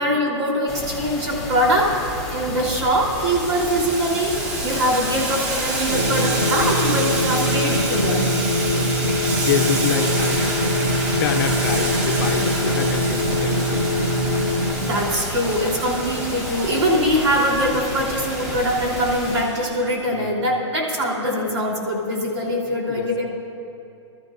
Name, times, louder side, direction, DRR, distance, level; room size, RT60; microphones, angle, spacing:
voice 1, 0.0-2.0 2.3-4.4 4.6-8.3 14.8-23.3, equal, 65° right, -2 dB, 3.5 m, -22 dB
sound 1, 0.7-19.4, left 2 dB, ahead, 2.1 m, -33 dB
Boiling, 3.1-19.8, right 2 dB, 35° right, 1.1 m, -29 dB
voice 2, 4.7-5.3 8.7-14.2 20.1-20.4 22.9-23.1, left 7 dB, 40° left, 4 dB, 0.8 m, -28 dB
sound 2, 5.9-14.7, equal, 50° right, 2.0 m, -23 dB
24.0 x 13.0 x 2.6 m, 2.8 s
hypercardioid pair, 165°, 16 cm